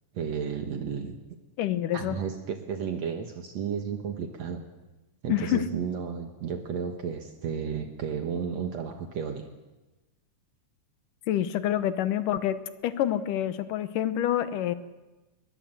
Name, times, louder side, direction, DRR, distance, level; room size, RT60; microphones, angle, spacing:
voice 1, 0.1-1.2 1.9-4.6 5.2-9.5, right 7 dB, 60° right, 5 dB, 2.4 m, -33 dB
voice 2, 1.6-2.2 5.3-5.6 11.3-14.7, left 11 dB, 85° left, 12 dB, 2.7 m, -27 dB
22.5 x 21.0 x 7.7 m, 1.1 s
omnidirectional pair, 3.6 m